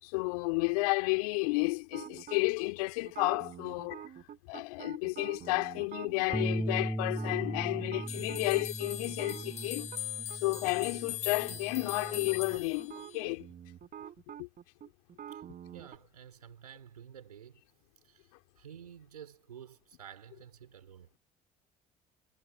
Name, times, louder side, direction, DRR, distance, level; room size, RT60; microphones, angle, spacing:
voice 1, 0.0-4.0 4.5-9.9 10.4-13.5 14.4-14.5, left 26 dB, 75° left, 3.7 m, -32 dB
sound 1, 1.9-2.4 3.1-6.5 7.1-10.6 10.9-11.1 11.4-16.0, right 10 dB, 50° right, 4.3 m, -47 dB
Bass guitar, 6.3-12.6, right 1 dB, 5° right, 1.1 m, -38 dB
sound 2, 8.1-13.3, left 11 dB, 35° left, 3.2 m, -41 dB
voice 2, 15.7-17.6 18.0-18.3 18.6-21.1, right 9 dB, 90° right, 4.3 m, -51 dB
hypercardioid pair, 60°, 19 cm